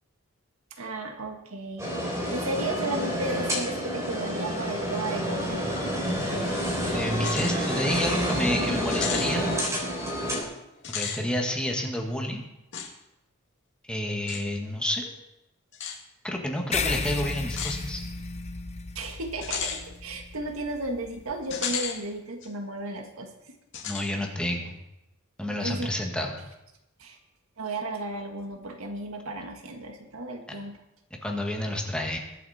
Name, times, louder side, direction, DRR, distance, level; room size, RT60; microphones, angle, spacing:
voice 1, 0.8-1.9 2.3-5.6 19.0-23.5 25.6-25.9 27.0-27.2 27.6-30.8, right 2 dB, 75° right, 4 dB, 1.7 m, -34 dB
sound 1, 1.8-10.4, equal, 15° right, 3.8 m, -29 dB
voice 2, 6.9-9.5 10.9-12.4 13.9-15.1 16.2-18.0 23.8-24.7 25.4-26.4 30.5-30.6 31.2-32.2, left 1 dB, 5° left, 0 dB, 1.8 m, -29 dB
sound 2, 7.1-7.6 8.0-8.1 8.9-9.3 10.8-11.2 12.7-12.9 14.3-14.4 15.7-16.0 17.5-17.8 19.4-19.8 21.5-22.0 22.4-22.5 23.7-24.1, left 7 dB, 55° left, 2.3 m, -33 dB
sound 3, 16.7-21.6, left 4 dB, 30° left, 0.6 m, -34 dB
21.5 x 8.5 x 4.3 m, 0.90 s
head